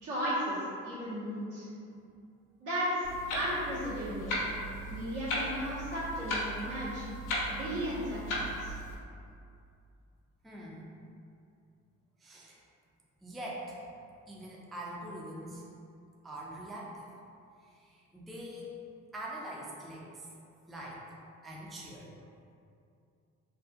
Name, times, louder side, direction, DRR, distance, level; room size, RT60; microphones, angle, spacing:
voice 1, 0.0-1.7 2.6-3.1 3.3-4.3 4.8-7.0 7.5-8.7, equal, 80° right, -10 dB, 1.2 m, -35 dB
Clock, 3.0-8.9, equal, 85° left, 0.6 m, -36 dB
voice 2, 10.4-10.9 12.2-12.6 13.2-13.8 14.3-15.6 16.2-17.1 17.6-18.7 19.1-20.3 20.7-21.0 21.4-22.1, right 1 dB, ahead, -4 dB, 0.3 m, -43 dB
2.7 x 2.6 x 2.3 m, 2.5 s
cardioid pair, 90°, 30 cm